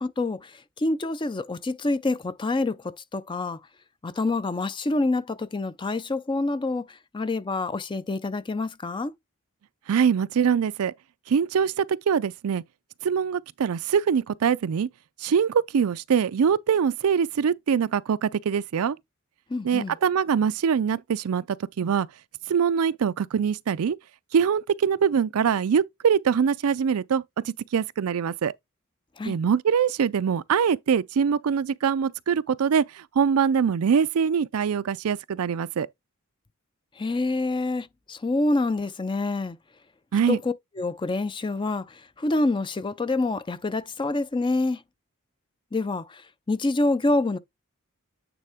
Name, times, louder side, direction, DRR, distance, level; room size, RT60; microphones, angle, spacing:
voice 1, 0.0-3.6 4.0-9.1 19.5-20.0 29.2-29.4 37.0-39.6 40.3-44.8 45.7-47.4, left 2 dB, 20° left, 0.4 m, -27 dB
voice 2, 9.9-10.9 11.3-12.6 13.0-14.9 15.2-19.0 19.6-22.1 22.5-24.0 24.3-28.5 29.3-35.9 40.1-40.4, right 7 dB, 75° right, 0.4 m, -23 dB
9.0 x 3.7 x 3.5 m
head